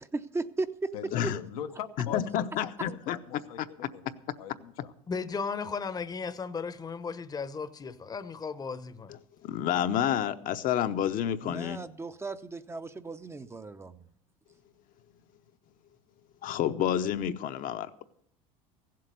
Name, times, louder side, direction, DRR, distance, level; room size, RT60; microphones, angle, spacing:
voice 1, 0.0-0.9 11.4-14.0, right 3 dB, 15° right, 0.6 m, -36 dB
voice 2, 0.9-4.9, left 9 dB, 90° left, 0.9 m, -42 dB
voice 3, 2.0-3.2 3.6-3.7 9.4-11.8 16.4-18.0, left 10 dB, 50° left, 0.8 m, -29 dB
voice 4, 5.1-9.1, left 5 dB, 20° left, 0.8 m, -35 dB
15.5 x 7.7 x 6.8 m
supercardioid pair, 95°, 18 cm